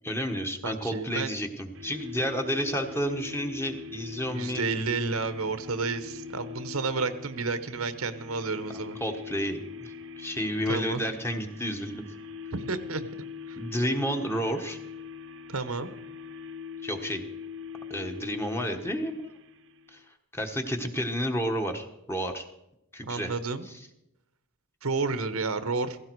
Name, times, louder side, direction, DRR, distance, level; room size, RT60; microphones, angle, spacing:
voice 1, 0.0-4.6 9.0-12.0 13.6-14.8 16.8-17.2 17.9-19.3 19.9-20.0 20.3-22.5 22.9-23.3 23.7-23.8, equal, 10° left, 4 dB, 1.3 m, -31 dB
voice 2, 0.6-1.3 4.3-9.0 10.7-11.0 12.5-13.1 13.5-13.6 15.5-15.9 23.0-23.7 24.8-26.0, right 4 dB, 85° right, 11 dB, 1.1 m, -31 dB
sound 1, 1.7-20.0, left 6 dB, 60° right, 0.9 m, -42 dB
16.5 x 16.0 x 4.7 m, 0.84 s
head